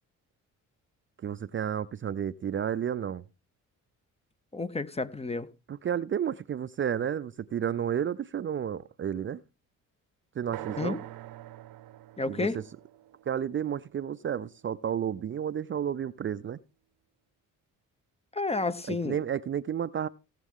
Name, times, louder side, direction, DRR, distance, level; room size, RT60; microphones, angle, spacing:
voice 1, 1.2-3.2 5.7-9.4 10.4-11.0 12.3-12.5 13.3-16.6 18.9-20.1, right 9 dB, 35° right, 0.5 m, -31 dB
voice 2, 4.5-5.5 10.8-11.0 12.2-12.6 18.3-19.2, left 3 dB, 20° left, 0.8 m, -31 dB
sound 1, 10.5-14.4, right 15 dB, 80° right, 0.8 m, -45 dB
18.0 x 7.4 x 3.7 m
cardioid pair, 75°, 33 cm